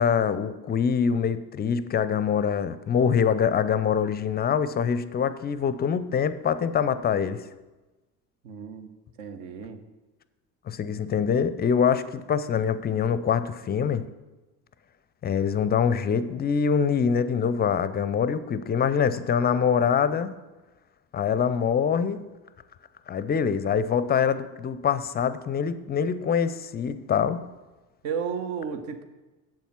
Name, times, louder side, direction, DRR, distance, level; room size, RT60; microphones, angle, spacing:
voice 1, 0.0-7.4 10.7-14.1 15.2-20.3 21.1-22.2 23.1-27.4, left 7 dB, 20° left, 14 dB, 0.4 m, -24 dB
voice 2, 8.4-8.9 9.2-9.8 28.0-29.0, right 6 dB, 65° right, 8 dB, 1.0 m, -33 dB
7.7 x 7.1 x 5.8 m, 1.1 s
figure-of-eight pair, 60°, 47 cm